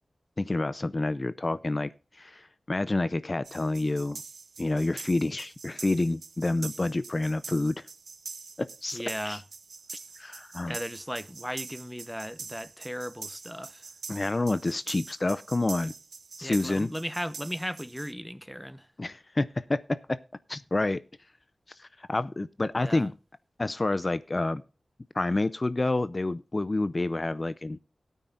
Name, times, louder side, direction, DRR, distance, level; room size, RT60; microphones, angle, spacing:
voice 1, 0.4-4.2 4.6-7.8 8.6-9.4 9.9-10.8 14.1-15.9 16.4-16.9 19.0-20.2 20.5-21.0 21.7-23.1 23.6-24.6 25.1-27.8, left 2 dB, 35° left, 0.5 m, -28 dB
sound 1, 3.4-18.1, right 4 dB, 75° right, 0.7 m, -44 dB
voice 2, 8.9-9.4 10.7-13.9 16.4-18.9 22.8-23.1, equal, ahead, 0.8 m, -36 dB
17.0 x 9.2 x 2.5 m
wide cardioid pair, 75°, 0 cm